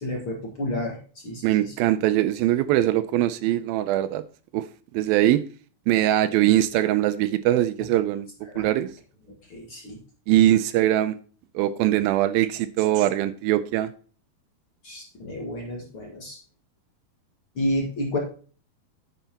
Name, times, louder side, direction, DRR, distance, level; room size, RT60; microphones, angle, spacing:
voice 1, 0.0-1.7 8.4-8.7 9.5-10.0 14.8-16.4 17.6-18.2, left 1 dB, 45° left, 0 dB, 2.0 m, -31 dB
voice 2, 1.4-4.2 4.5-4.7 4.9-5.4 5.9-8.3 8.6-8.9 10.3-11.2 11.6-13.9, right 13 dB, 80° right, 14 dB, 2.4 m, -21 dB
9.8 x 9.1 x 2.9 m, 0.39 s
omnidirectional pair, 4.3 m